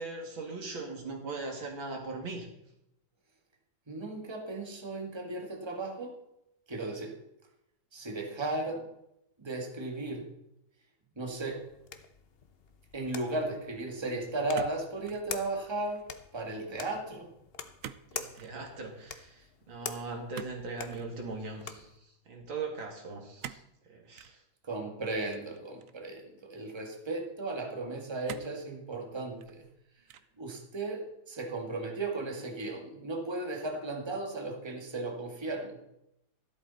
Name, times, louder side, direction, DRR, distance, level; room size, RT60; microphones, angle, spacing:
voice 1, 0.0-2.5 18.1-24.4, right 3 dB, 85° right, 1 dB, 3.2 m, -40 dB
voice 2, 3.9-6.1 6.7-7.2 7.9-8.9 9.4-10.3 11.2-11.7 12.9-16.1 16.3-17.3 24.6-29.6 30.4-35.8, right 2 dB, 15° right, 2 dB, 1.9 m, -35 dB
sound 1, 11.2-22.0, left 6 dB, 50° left, 0.7 m, -46 dB
sound 2, 14.5-15.3 15.7-16.1 17.8-18.1 18.3-18.6 20.3-21.1 23.4-23.7 24.2-24.4 25.3-26.1 26.8-26.9 28.3-28.6 29.2-29.7 30.1-30.4, right 9 dB, 70° right, 0.8 m, -45 dB
14.0 x 12.5 x 4.1 m, 0.82 s
omnidirectional pair, 2.1 m